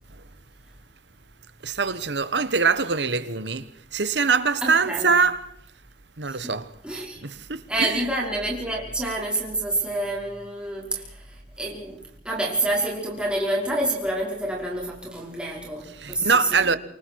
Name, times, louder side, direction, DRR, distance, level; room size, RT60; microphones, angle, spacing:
voice 1, 1.6-3.6 3.9-5.5 6.2-6.7 7.2-8.1 16.0-16.8, right 5 dB, 80° right, 1.3 m, -23 dB
voice 2, 4.6-5.2 6.2-6.5 6.8-7.2 7.7-16.8, right 1 dB, 5° right, 5.3 m, -28 dB
28.0 x 24.5 x 4.8 m
head